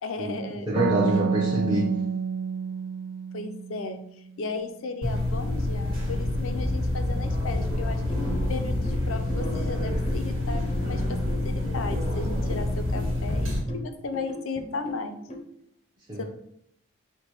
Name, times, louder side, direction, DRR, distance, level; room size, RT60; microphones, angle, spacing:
voice 1, 0.0-0.7 1.0-1.2 3.3-4.0 4.4-8.0 8.5-11.2 11.4-15.2 16.2-16.3, left 3 dB, 80° left, 8 dB, 0.5 m, -35 dB
voice 2, 0.7-2.0 16.1-16.2, right 1 dB, 20° right, -5 dB, 0.6 m, -25 dB
sound 1, 0.8-4.3, right 5 dB, 65° right, 0.4 m, -29 dB
sound 2, 5.0-13.6, left 1 dB, 80° right, 1.5 m, -27 dB
sound 3, 7.7-15.4, left 2 dB, 30° left, 0.6 m, -40 dB
4.6 x 2.2 x 4.7 m, 0.73 s
head